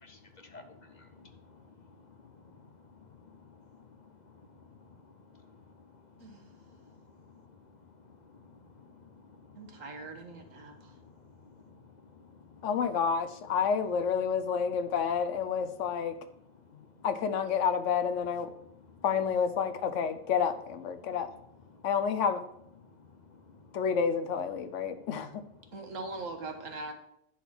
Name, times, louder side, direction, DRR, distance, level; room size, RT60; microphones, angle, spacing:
voice 1, 0.0-12.7 16.4-17.1 18.6-19.0 21.0-21.2 21.7-21.9 22.8-23.8 24.8-25.1 25.6-25.9, left 4 dB, 45° left, 7 dB, 0.7 m, -56 dB
voice 2, 6.2-6.5 9.5-10.9 25.7-26.9, right 3 dB, 85° right, 5 dB, 1.6 m, -41 dB
voice 3, 12.6-16.1 16.7-18.5 19.0-21.3 21.8-22.4 23.7-25.4, left 6 dB, 75° left, 10 dB, 1.0 m, -29 dB
10.0 x 4.0 x 6.0 m, 0.75 s
omnidirectional pair, 1.3 m